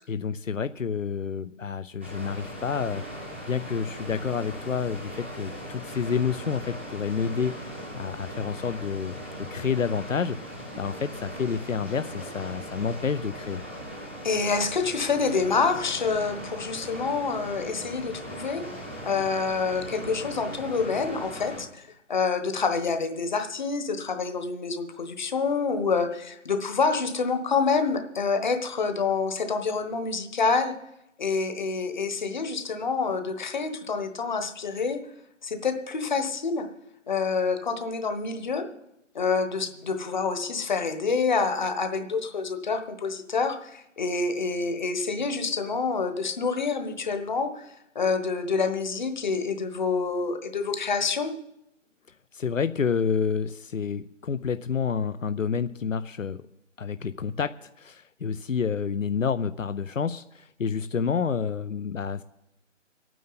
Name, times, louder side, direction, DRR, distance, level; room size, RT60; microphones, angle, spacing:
voice 1, 0.1-3.0 3.5-7.6 7.9-13.6 52.3-56.4 56.8-62.2, left 6 dB, 80° left, 13 dB, 0.7 m, -29 dB
Water, 2.0-21.6, equal, 10° right, 0.6 m, -39 dB
voice 2, 14.2-18.6 19.0-30.7 31.2-35.0 35.4-36.6 37.1-38.7 39.1-47.7 47.9-51.3, left 4 dB, 35° left, 7 dB, 1.3 m, -27 dB
25.5 x 9.2 x 4.1 m, 0.85 s
figure-of-eight pair, 155°, 39 cm